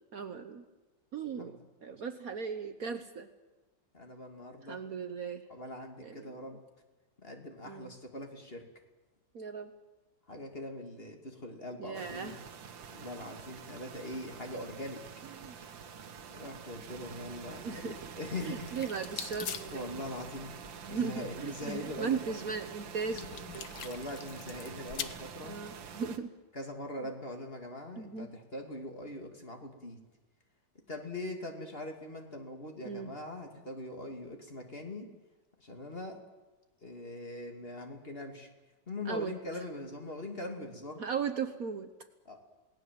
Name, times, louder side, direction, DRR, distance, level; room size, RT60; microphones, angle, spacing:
voice 1, 0.1-0.6 1.1-3.3 4.6-5.4 6.0-6.4 7.6-7.9 9.3-9.7 11.8-12.4 15.4-15.5 17.6-18.0 18.4-20.0 20.8-23.7 25.4-26.3 28.0-28.3 32.8-33.1 39.0-39.3 41.0-41.9, right 6 dB, 55° right, 9 dB, 1.4 m, -37 dB
voice 2, 3.9-4.8 5.5-6.6 7.2-8.7 10.3-12.4 12.9-15.0 16.3-18.9 19.7-20.5 20.9-22.5 23.8-25.6 26.5-30.0 30.9-35.1 35.6-36.2 36.8-38.5 38.9-41.0 42.2-42.4, left 1 dB, 30° left, 3 dB, 2.7 m, -42 dB
sound 1, 11.9-26.2, right 7 dB, 85° right, 2.1 m, -47 dB
sound 2, 18.4-25.0, left 8 dB, 85° left, 1.9 m, -44 dB
28.5 x 18.5 x 7.6 m, 1.1 s
omnidirectional pair, 2.0 m